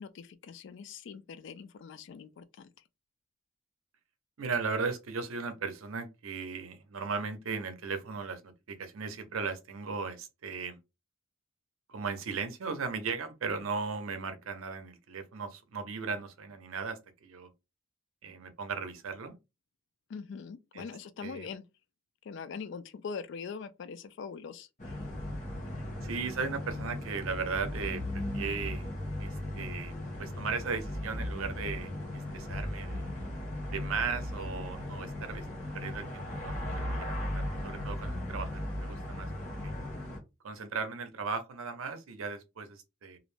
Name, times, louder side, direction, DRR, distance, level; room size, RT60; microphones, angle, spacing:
voice 1, 0.0-2.7 20.1-21.6 22.2-24.9, left 5 dB, 60° left, 0.3 m, -42 dB
voice 2, 4.4-10.8 11.9-17.5 18.2-19.4 20.7-20.8 21.2-21.5 26.0-28.9 29.2-33.0 33.7-35.5 35.7-39.7 40.4-43.2, right 5 dB, 85° right, 0.6 m, -37 dB
sound 1, 24.8-40.2, left 1 dB, 40° left, 0.9 m, -37 dB
2.5 x 2.0 x 3.1 m
head